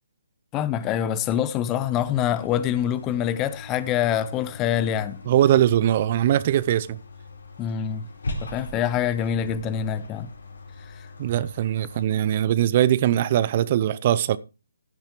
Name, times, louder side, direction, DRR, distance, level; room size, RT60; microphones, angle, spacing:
voice 1, 0.5-5.2 7.6-8.0 8.4-10.3 11.0-11.1, left 9 dB, 20° left, 0.8 m, -25 dB
sound 1, 1.8-12.1, left 2 dB, 70° left, 4.2 m, -40 dB
voice 2, 5.3-7.0 11.2-14.4, right 11 dB, 40° right, 0.6 m, -21 dB
16.0 x 10.5 x 3.2 m
figure-of-eight pair, 145°, 0 cm